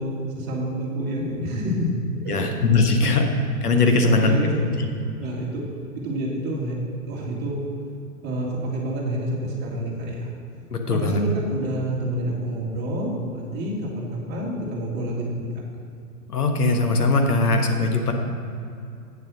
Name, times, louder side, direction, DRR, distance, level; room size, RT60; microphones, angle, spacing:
voice 1, 0.0-1.9 2.2-2.5 3.0-3.2 4.0-4.8 5.2-5.7 6.0-6.8 7.1-7.6 8.2-10.3 10.9-15.5, right 1 dB, 20° right, -3 dB, 2.0 m, -28 dB
voice 2, 2.3-3.3 3.6-4.4 10.7-11.2 16.3-18.1, left 3 dB, 70° left, 3 dB, 1.4 m, -20 dB
8.4 x 7.4 x 6.1 m, 2.5 s
figure-of-eight pair, 115°, 47 cm